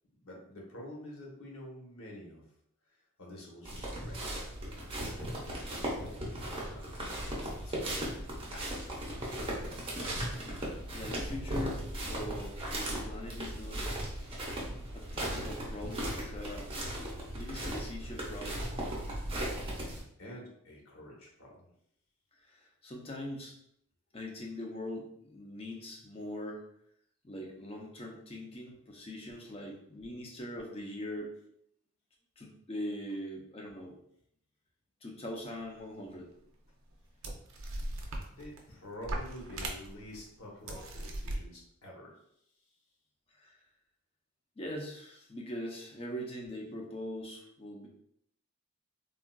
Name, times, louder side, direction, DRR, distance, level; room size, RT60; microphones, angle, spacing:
voice 1, 0.2-2.5 2.9-4.4 4.6-9.6 20.2-21.7 38.3-42.2, left 1 dB, 70° left, -2 dB, 1.0 m, -49 dB
sound 1, 3.6-20.0, right 1 dB, 25° right, 0.6 m, -37 dB
voice 2, 10.9-14.0 14.9-16.7 17.4-18.7 22.3-23.5 24.1-26.7 27.2-31.3 32.4-34.0 35.0-36.3 40.7-40.9 43.3-43.6 44.6-47.9, left 1 dB, 25° left, 0 dB, 0.5 m, -42 dB
sound 2, 36.1-36.2 36.9-37.0 37.2-38.7 39.0-40.2 40.7-41.4, right 1 dB, 70° right, 0.5 m, -38 dB
3.6 x 2.4 x 2.2 m, 0.70 s
head